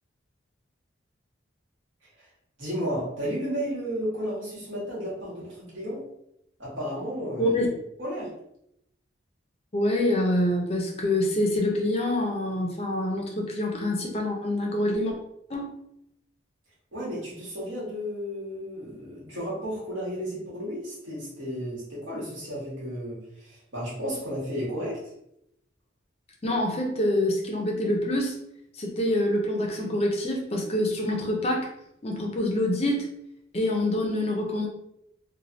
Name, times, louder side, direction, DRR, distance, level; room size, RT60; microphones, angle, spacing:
voice 1, 2.6-6.1 6.6-7.6 8.0-8.3 16.9-25.0, equal, 80° right, -7 dB, 1.4 m, -33 dB
voice 2, 9.7-15.1 15.5-15.7 26.4-28.4 28.7-31.7 32.0-33.1 33.5-34.7, left 1 dB, 30° left, 0 dB, 0.5 m, -26 dB
3.2 x 2.2 x 2.6 m, 0.77 s
head